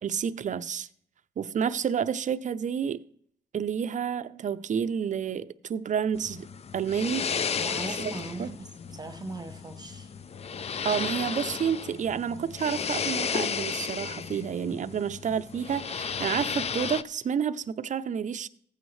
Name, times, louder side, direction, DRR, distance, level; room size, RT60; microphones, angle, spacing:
voice 1, 0.0-0.9 1.4-3.0 3.5-6.5 6.7-7.3 8.0-8.1 8.4-8.5 10.8-18.5, right 7 dB, 45° right, 0.5 m, -30 dB
sound 1, 6.1-17.0, left 6 dB, 35° left, 0.4 m, -33 dB
voice 2, 7.5-10.1 14.9-15.1, right 3 dB, 20° right, 0.9 m, -40 dB
15.5 x 9.1 x 3.2 m
cardioid pair, 120°, 18 cm